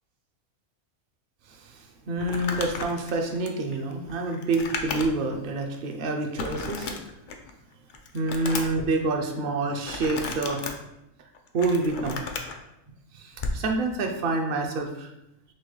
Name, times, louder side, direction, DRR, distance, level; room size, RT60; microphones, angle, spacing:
voice 1, 1.5-6.9 8.1-10.7 11.5-12.2 13.1-15.1, right 2 dB, 55° right, 3 dB, 0.6 m, -27 dB
Crumpling crinkling, 2.2-5.3 5.7-5.8 6.4-7.5 7.9-8.9 9.8-10.7 11.3-12.6 13.3-13.6, left 4 dB, 85° left, 0.4 m, -34 dB
6.0 x 2.3 x 3.1 m, 0.86 s
omnidirectional pair, 1.4 m